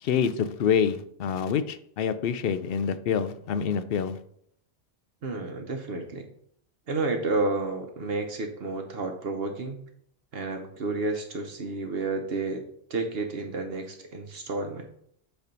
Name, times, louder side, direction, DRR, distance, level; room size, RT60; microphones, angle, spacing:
voice 1, 0.0-4.2, left 7 dB, 65° left, 12 dB, 0.7 m, -26 dB
voice 2, 5.2-6.3 6.9-9.8 10.3-12.6 12.9-14.9, right 3 dB, 65° right, 4 dB, 1.0 m, -31 dB
8.2 x 3.4 x 5.2 m, 0.68 s
omnidirectional pair, 1.1 m